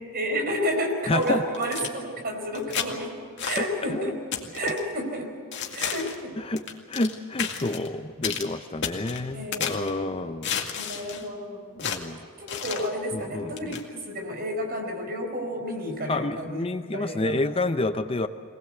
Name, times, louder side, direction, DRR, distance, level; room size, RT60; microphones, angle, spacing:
voice 1, 0.1-3.1 3.4-4.2 4.5-5.3 5.7-6.4 9.3-10.1 10.8-11.7 12.4-16.6 16.9-17.4, equal, 50° right, 3 dB, 4.6 m, -31 dB
voice 2, 1.1-1.4 3.6-3.7 3.9-4.1 4.6-4.7 6.4-6.6 6.9-10.5 10.8-11.0 11.8-12.2 13.1-13.8 16.1-18.3, left 2 dB, 25° left, 10 dB, 0.6 m, -29 dB
sound 1, 1.2-1.9 2.5-2.9 3.4-3.7 4.3-4.8 5.5-6.2 6.6-7.1 7.4-7.9 8.2-8.5 8.8-9.9 10.4-11.3 11.8-12.0 12.5-12.9 13.6-13.8, left 7 dB, 60° left, 2.1 m, -32 dB
23.5 x 19.0 x 8.0 m, 2.3 s
head